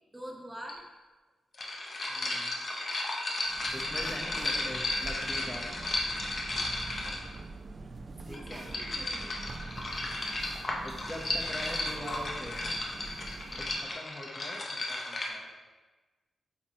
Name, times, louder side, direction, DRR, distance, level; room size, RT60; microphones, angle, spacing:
voice 1, 0.1-0.8 3.9-4.2 8.1-9.6, equal, 10° right, 0 dB, 1.0 m, -46 dB
sound 1, 0.7-0.8 1.5-7.4 8.3-15.3, left 2 dB, 40° left, 0.9 m, -34 dB
voice 2, 2.1-2.5 3.7-5.8 8.3-8.7 10.8-12.6 13.6-15.5, left 1 dB, 10° left, -2 dB, 0.8 m, -43 dB
sound 2, 3.4-14.0, right 3 dB, 40° right, 0.4 m, -44 dB
8.1 x 3.0 x 4.7 m, 1.2 s
wide cardioid pair, 140°, 0 cm